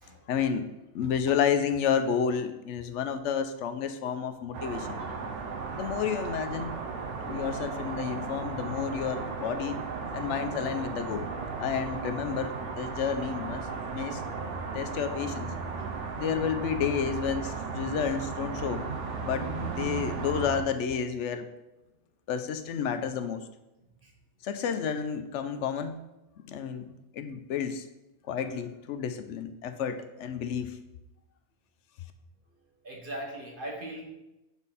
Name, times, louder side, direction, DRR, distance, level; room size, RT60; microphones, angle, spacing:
voice 1, 0.3-0.6 0.9-5.0 5.8-6.7 7.2-9.8 10.1-11.3 11.6-14.2 14.7-15.5 16.2-18.8 19.2-21.5 22.3-23.4 24.4-26.0 26.5-27.8 28.3-30.8, left 7 dB, 90° left, 9 dB, 0.9 m, -31 dB
sound 1, 4.5-20.6, right 4 dB, 85° right, 1.2 m, -35 dB
voice 2, 32.8-34.1, right 1 dB, 50° right, 0 dB, 1.4 m, -39 dB
7.2 x 4.1 x 4.1 m, 0.96 s
omnidirectional pair, 1.2 m